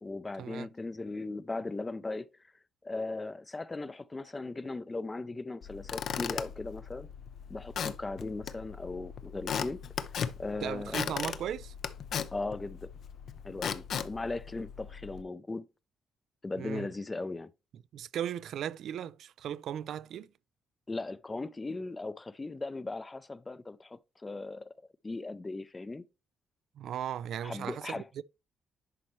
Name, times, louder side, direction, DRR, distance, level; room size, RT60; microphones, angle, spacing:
voice 1, 0.0-2.3 2.8-7.1 7.5-9.8 10.4-11.3 12.3-12.9 13.4-15.7 16.4-17.5 20.9-24.7 25.0-26.0 27.4-28.2, left 3 dB, 20° left, 0.5 m, -38 dB
Squeak / Wood, 5.6-15.2, left 8 dB, 65° left, 0.6 m, -38 dB
voice 2, 10.6-11.7 16.6-16.9 17.9-20.3 26.8-28.2, right 10 dB, 70° right, 0.3 m, -37 dB
10.5 x 4.2 x 3.1 m
cardioid pair, 90°, 0 cm